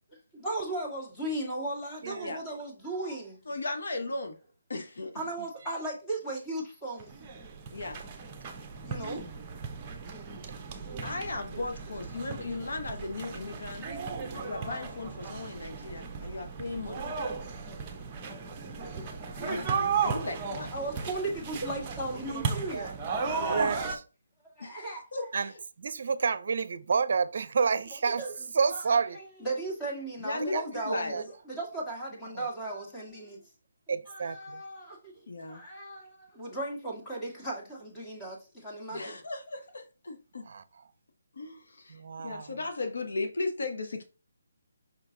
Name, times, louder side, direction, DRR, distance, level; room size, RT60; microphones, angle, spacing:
voice 1, 0.3-3.4 5.1-7.1 8.8-9.2 10.9-11.1 11.5-11.6 13.0-13.1 14.4-14.5 15.8-15.9 17.6-17.7 18.3-18.4 18.8-19.0 19.9-20.1 20.7-23.0 24.6-25.3 27.9-28.3 28.7-33.4 34.1-35.2 35.5-39.2, right 2 dB, 10° left, 1.9 m, -37 dB
voice 2, 2.0-2.4 18.6-18.7 22.7-23.0 23.5-24.0 25.3-25.5 25.8-28.2 28.5-29.2 30.5-30.6 30.9-31.2 32.3-32.5 33.9-34.6 38.9-39.0 40.5-40.6 41.9-42.5, right 5 dB, 55° right, 0.6 m, -29 dB
voice 3, 3.5-4.3 4.7-5.1 7.7-8.0 11.0-13.9 14.3-17.2 19.5-20.7 23.3-23.6 24.6-24.8 25.1-25.3 30.2-31.2 35.3-35.6 38.9-40.5 41.4-44.0, left 3 dB, 70° left, 1.2 m, -36 dB
sound 1, 7.0-24.0, right 5 dB, 20° right, 1.0 m, -35 dB
5.8 x 4.5 x 3.9 m
hypercardioid pair, 165°, 0 cm